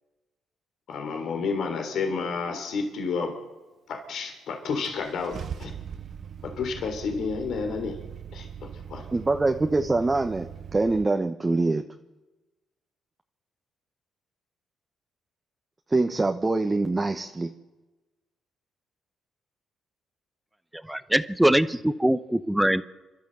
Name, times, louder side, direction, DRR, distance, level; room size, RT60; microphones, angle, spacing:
voice 1, 0.9-3.3 3.9-5.7 6.6-8.0 8.3-9.0, left 4 dB, 70° left, 5 dB, 3.3 m, -30 dB
Car / Engine starting, 4.1-4.2 4.8-11.0, right 7 dB, 55° right, 0.8 m, -40 dB
voice 2, 9.1-11.8 15.9-17.5, right 3 dB, 20° right, 5 dB, 1.0 m, -24 dB
voice 3, 20.9-22.8, right 1 dB, 5° right, 14 dB, 0.8 m, -22 dB
28.5 x 12.5 x 7.8 m, 1.1 s
cardioid pair, 90°, 0 cm